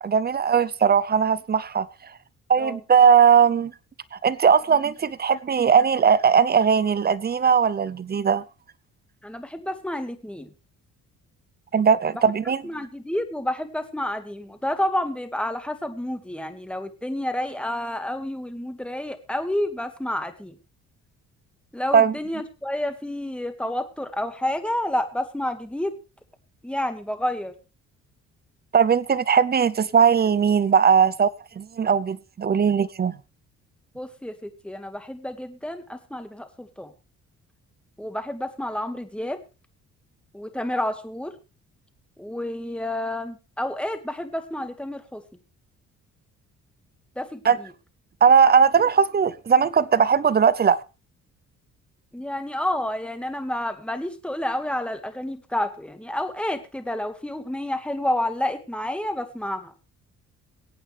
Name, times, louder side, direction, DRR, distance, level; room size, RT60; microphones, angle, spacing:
voice 1, 0.0-1.9 2.5-3.7 4.1-8.4 11.7-12.6 21.9-22.1 28.7-31.3 31.6-33.2 47.4-47.6 48.2-50.8, right 7 dB, 30° right, 0.8 m, -19 dB
voice 2, 9.2-10.5 12.6-20.6 21.7-26.0 26.6-27.5 33.9-36.9 38.0-39.4 40.3-41.4 42.2-45.2 47.2-47.7 52.1-59.7, left 1 dB, 5° left, 2.0 m, -29 dB
22.5 x 8.7 x 3.4 m
cardioid pair, 90°, 30 cm